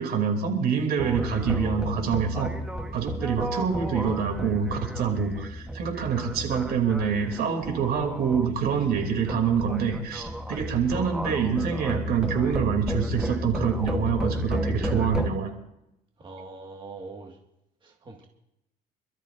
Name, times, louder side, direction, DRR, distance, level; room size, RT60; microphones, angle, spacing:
voice 1, 0.0-2.5 2.9-15.5, right 6 dB, 65° right, 3 dB, 3.0 m, -26 dB
sound 1, 1.0-15.3, equal, 5° right, 1.2 m, -32 dB
voice 2, 16.2-17.4 17.8-18.3, right 3 dB, 30° right, 1 dB, 2.0 m, -42 dB
27.5 x 13.0 x 2.6 m, 0.85 s
cardioid pair, 110°, 17 cm